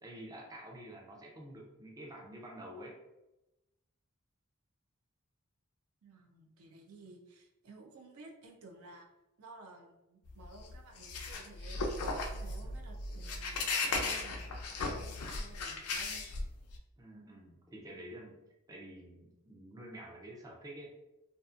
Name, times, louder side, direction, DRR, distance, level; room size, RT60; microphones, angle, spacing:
voice 1, 0.0-3.0 12.6-12.7 17.0-18.4 18.7-20.9, right 1 dB, 15° right, -2 dB, 0.4 m, -49 dB
voice 2, 6.0-9.1 9.4-16.2, right 2 dB, 75° right, 2 dB, 0.5 m, -55 dB
sound 1, 10.3-16.8, left 3 dB, 85° left, 0.4 m, -36 dB
2.5 x 2.4 x 2.4 m, 0.98 s
head